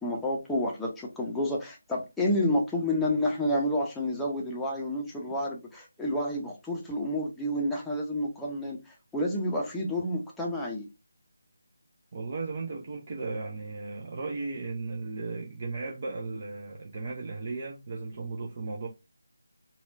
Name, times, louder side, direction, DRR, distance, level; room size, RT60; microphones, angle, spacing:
voice 1, 0.0-10.9, left 1 dB, 5° left, 0.7 m, -29 dB
voice 2, 12.1-18.9, right 3 dB, 40° right, 0.6 m, -36 dB
4.1 x 2.4 x 2.6 m
figure-of-eight pair, 155°, 0 cm